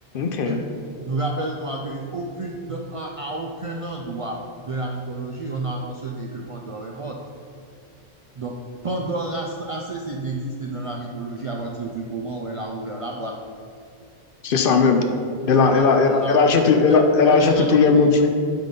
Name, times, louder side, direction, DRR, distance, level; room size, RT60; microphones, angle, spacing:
voice 1, 0.1-0.6 14.4-15.0 15.5-18.3, left 4 dB, 60° left, 5 dB, 0.7 m, -17 dB
voice 2, 1.0-7.2 8.3-13.4 15.4-17.7, right 2 dB, 65° right, 0 dB, 0.3 m, -30 dB
9.0 x 3.8 x 3.7 m, 2.3 s
omnidirectional pair, 1.1 m